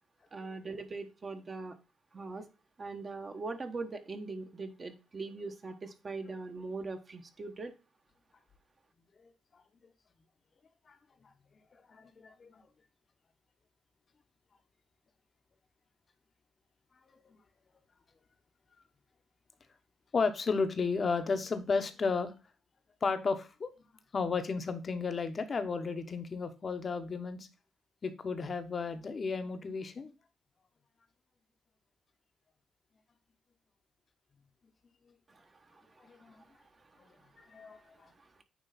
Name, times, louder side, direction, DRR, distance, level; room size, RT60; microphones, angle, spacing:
voice 1, 0.3-1.7 2.1-2.5 2.8-7.7 35.3-35.8 37.3-37.4 38.2-38.4, right 3 dB, 35° right, 6 dB, 1.2 m, -41 dB
voice 2, 11.9-12.6 20.1-22.3 23.0-23.7 24.1-27.5 28.0-30.1 36.0-36.4 37.0-37.1 37.4-38.1, left 4 dB, 40° left, 9 dB, 1.0 m, -33 dB
9.1 x 3.2 x 4.0 m, 0.31 s
cardioid pair, 90°, 0 cm